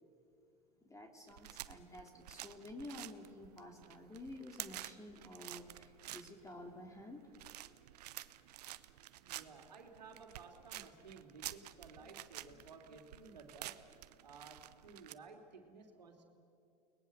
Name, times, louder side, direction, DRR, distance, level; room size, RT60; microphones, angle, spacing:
voice 1, 0.8-7.2 12.5-12.6, left 1 dB, 15° left, 3 dB, 3.0 m, -51 dB
sound 1, 1.3-15.1, right 14 dB, 75° right, 0.9 m, -51 dB
voice 2, 9.2-13.8 14.2-16.2, right 4 dB, 90° right, 4 dB, 2.9 m, -55 dB
30.0 x 20.5 x 7.0 m, 2.6 s
hypercardioid pair, 90°, 21 cm